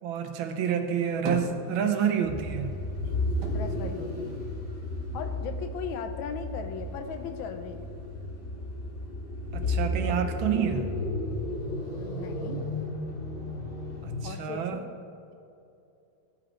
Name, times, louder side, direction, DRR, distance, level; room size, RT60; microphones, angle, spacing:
voice 1, 0.0-2.7 9.5-10.9 14.0-14.8, right 8 dB, 85° right, 6 dB, 1.6 m, -28 dB
sound 1, 0.8-2.3 2.6-5.0 5.3-6.2, right 1 dB, 60° right, 1.8 m, -39 dB
sound 2, 2.2-14.4, left 1 dB, 50° left, 2.8 m, -33 dB
voice 2, 3.5-4.4 5.1-7.9 12.0-12.6 14.2-14.8, left 6 dB, 80° left, 7 dB, 1.5 m, -38 dB
14.0 x 5.2 x 4.4 m, 2.6 s
omnidirectional pair, 2.2 m